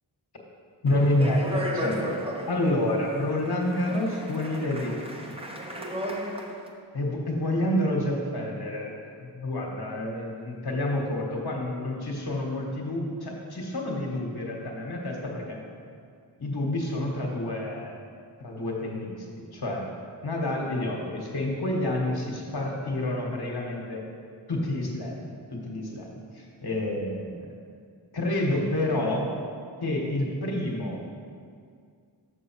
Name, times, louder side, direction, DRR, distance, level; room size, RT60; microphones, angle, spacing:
voice 1, 0.8-2.2 2.5-5.4 6.9-8.9 9.2-15.6 16.4-17.9 18.4-19.3 19.5-19.9 20.2-24.0 24.5-27.5 28.1-29.3 29.8-31.1, left 1 dB, 55° left, -1 dB, 1.6 m, -28 dB
Speech, 0.9-6.7, equal, 10° right, 0.9 m, -35 dB
6.7 x 6.1 x 4.7 m, 2.2 s
cardioid pair, 45°, 46 cm